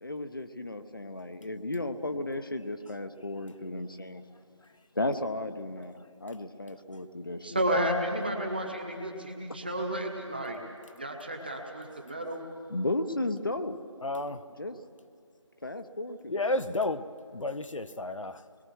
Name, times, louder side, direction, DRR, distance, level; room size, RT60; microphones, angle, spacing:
voice 1, 0.0-4.2 4.9-7.6 12.7-13.8 14.6-14.8 15.6-16.6, left 2 dB, 45° left, 0.9 m, -34 dB
voice 2, 7.4-10.6 11.0-12.4, right 1 dB, 20° right, 1.2 m, -31 dB
voice 3, 14.0-14.4 16.3-17.1 17.3-18.4, left 2 dB, 80° left, 1.0 m, -31 dB
26.0 x 21.5 x 4.7 m
figure-of-eight pair, 180°, 16 cm